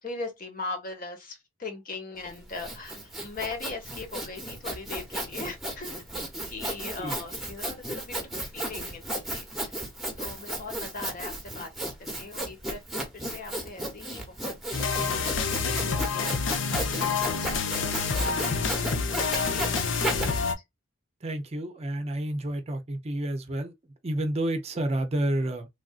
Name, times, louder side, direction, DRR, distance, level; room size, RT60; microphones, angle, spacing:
voice 1, 0.0-5.9 6.5-9.8 10.2-11.7 12.0-14.6 14.8-20.5, left 3 dB, 45° left, 1.1 m, -40 dB
Sawing, 2.2-20.3, right 1 dB, ahead, 1.0 m, -34 dB
sound 1, 14.7-20.5, left 5 dB, 70° left, 0.6 m, -28 dB
voice 2, 21.2-23.7 24.0-25.7, right 1 dB, 35° right, 0.6 m, -30 dB
3.3 x 2.5 x 2.4 m
head